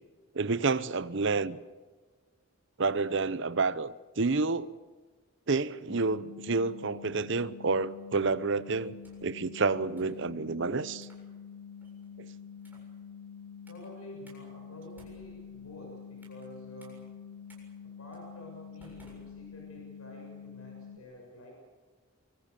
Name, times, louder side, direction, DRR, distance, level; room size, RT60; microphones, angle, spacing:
voice 1, 0.3-1.6 2.8-4.8 5.5-8.9 9.2-11.1 12.2-12.3, right 4 dB, 55° right, 0.8 m, -29 dB
sound 1, 5.9-21.0, left 7 dB, 65° left, 2.7 m, -47 dB
sound 2, 8.8-9.4 10.0-10.2 10.9-11.3 11.8-12.1 12.6-13.0 13.7-13.9 14.3-14.4 14.8-16.5 16.8-17.0 17.5-17.6 18.1-18.3 18.8-19.9, right 1 dB, 10° right, 7.3 m, -59 dB
voice 2, 13.7-17.0 18.0-21.5, equal, 85° left, 6.8 m, -49 dB
24.5 x 24.0 x 6.8 m
head